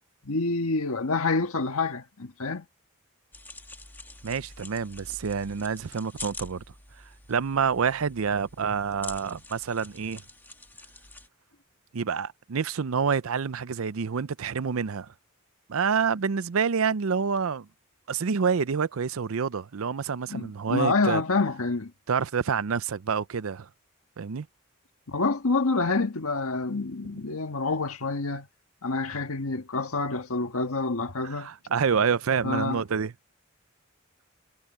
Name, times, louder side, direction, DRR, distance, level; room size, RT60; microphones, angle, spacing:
voice 1, 0.2-2.6 20.3-21.9 25.1-28.5 28.8-31.5 32.4-32.8, left 3 dB, 85° left, 1.5 m, -27 dB
sound 1, 3.3-11.3, left 2 dB, 10° left, 1.3 m, -45 dB
voice 2, 4.2-6.6 7.3-10.2 11.9-15.1 15.7-17.7 18.1-21.2 22.1-23.7 24.2-24.5 31.2-33.1, right 6 dB, 75° right, 0.5 m, -27 dB
head